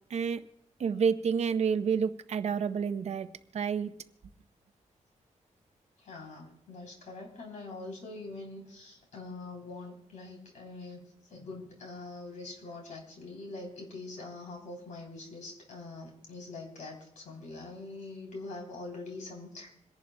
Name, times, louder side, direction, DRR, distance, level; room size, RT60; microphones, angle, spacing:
voice 1, 0.1-0.4 0.8-3.3 3.5-3.9, right 6 dB, 60° right, 11 dB, 0.6 m, -29 dB
voice 2, 6.0-19.7, left 3 dB, 75° left, 0 dB, 3.2 m, -44 dB
27.5 x 11.0 x 2.2 m, 0.72 s
wide cardioid pair, 150°, 13 cm